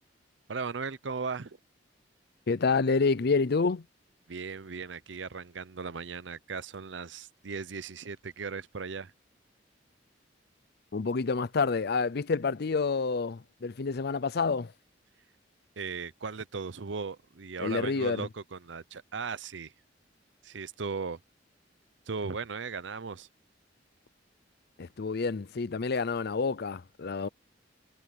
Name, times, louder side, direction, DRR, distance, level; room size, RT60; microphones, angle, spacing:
voice 1, 0.5-1.6 4.3-9.1 15.8-19.7 20.4-21.2 22.1-23.3, right 5 dB, 70° right, 0.7 m, -37 dB
voice 2, 2.5-3.8 10.9-14.7 17.6-18.3 24.8-27.3, left 4 dB, 60° left, 0.6 m, -28 dB
head